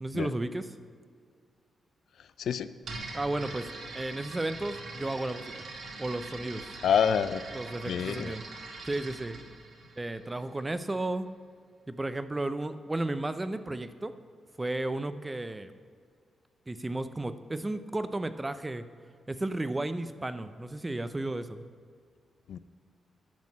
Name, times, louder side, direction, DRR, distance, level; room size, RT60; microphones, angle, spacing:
voice 1, 0.0-0.7 3.1-3.7 3.9-5.5 6.0-6.6 7.5-8.4 8.8-9.4 10.0-11.3 11.9-14.1 14.6-15.7 16.7-18.8 19.3-21.6, right 2 dB, 15° right, 11 dB, 0.6 m, -33 dB
sound 1, 2.8-10.6, right 3 dB, 65° right, 1.9 m, -43 dB
voice 2, 6.8-7.4 7.9-8.3 22.5-22.6, left 8 dB, 75° left, 13 dB, 0.4 m, -27 dB
10.5 x 6.4 x 7.2 m, 2.1 s
cardioid pair, 110°, 0 cm